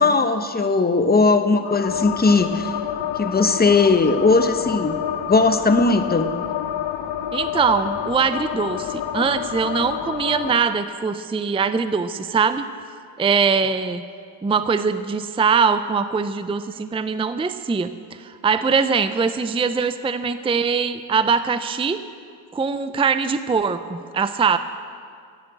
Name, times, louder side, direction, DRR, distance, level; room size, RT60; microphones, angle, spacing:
voice 1, 0.0-2.8 3.2-5.0 5.3-6.3, left 3 dB, 20° left, 8 dB, 1.0 m, -18 dB
sound 1, 1.6-10.6, left 10 dB, 70° left, 0.8 m, -28 dB
voice 2, 7.3-12.6 13.2-14.0 14.4-17.9 18.2-22.0 22.5-24.6, right 5 dB, 10° right, 12 dB, 0.5 m, -22 dB
11.0 x 9.3 x 8.0 m, 2.2 s
cardioid pair, 65°, 46 cm